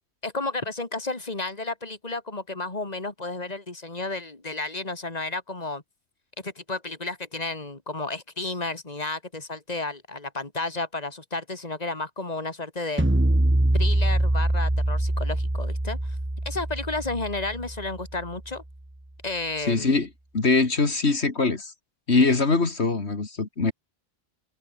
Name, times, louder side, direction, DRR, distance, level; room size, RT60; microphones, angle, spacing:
voice 1, 0.2-5.8 6.4-13.1 13.7-16.2 16.4-18.6 19.2-20.0, left 3 dB, 40° left, 3.1 m, -32 dB
sound 1, 13.0-18.3, right 1 dB, 10° right, 1.4 m, -24 dB
voice 2, 19.7-20.1 20.3-21.7 22.1-23.7, left 3 dB, 80° left, 2.8 m, -22 dB
open air
omnidirectional pair, 1.1 m